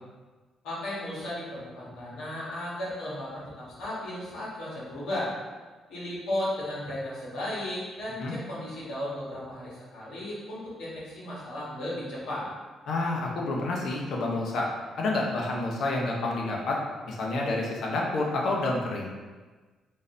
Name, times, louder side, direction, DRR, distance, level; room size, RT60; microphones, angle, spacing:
voice 1, 0.6-5.3 5.9-12.5, left 1 dB, 85° left, -7 dB, 1.5 m, -35 dB
voice 2, 12.9-14.7 15.0-16.8 17.0-19.1, left 2 dB, 65° left, -1 dB, 0.8 m, -29 dB
3.8 x 2.7 x 3.8 m, 1.3 s
cardioid pair, 90°, 0 cm